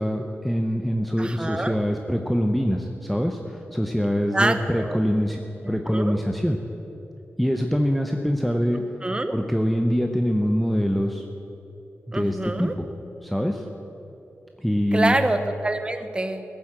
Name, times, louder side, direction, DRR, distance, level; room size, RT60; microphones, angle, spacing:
voice 1, 0.0-6.6 7.4-8.8 9.3-11.3 12.1-12.9 13.2-13.7 14.6-15.2, equal, ahead, 3 dB, 0.7 m, -24 dB
voice 2, 1.2-1.8 4.3-5.0 5.9-6.2 9.0-9.3 12.1-12.7 14.9-16.4, right 2 dB, 20° right, 9 dB, 0.9 m, -26 dB
16.0 x 8.6 x 7.6 m, 3.0 s
wide cardioid pair, 110°, 5 cm